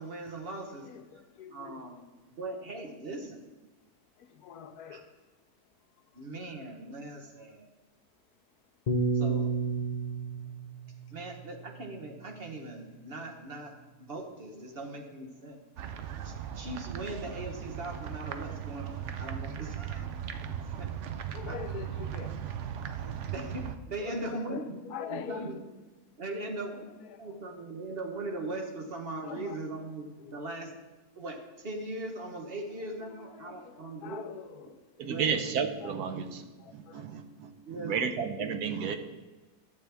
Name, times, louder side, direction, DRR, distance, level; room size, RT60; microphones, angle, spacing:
voice 1, 0.0-0.9 1.5-2.0 2.3-3.4 4.9-5.0 6.2-7.7 9.1-9.5 11.1-13.7 14.1-15.6 16.2-20.1 20.8-20.9 21.4-21.6 23.3-24.8 25.1-25.6 26.2-26.7 27.2-30.7 31.2-34.3 35.0-35.3 37.6-38.0, right 2 dB, 40° right, 1.2 m, -39 dB
voice 2, 0.9-1.8 4.4-5.0 21.3-22.3 23.0-23.2 24.0-24.6 24.9-25.4 27.1-27.2 29.2-29.6 30.2-30.4 32.5-32.6 33.1-34.7 35.0-35.1 35.8-35.9 38.9-39.0, left 9 dB, 80° left, 1.2 m, -43 dB
Piano, 8.9-13.3, right 4 dB, 40° left, 0.6 m, -33 dB
sound 1, 15.8-23.7, right 9 dB, 60° right, 0.8 m, -38 dB
voice 3, 35.0-36.5 37.0-37.1 37.4-37.5 37.8-39.0, right 6 dB, 75° right, 1.2 m, -31 dB
12.0 x 7.7 x 3.4 m
omnidirectional pair, 1.6 m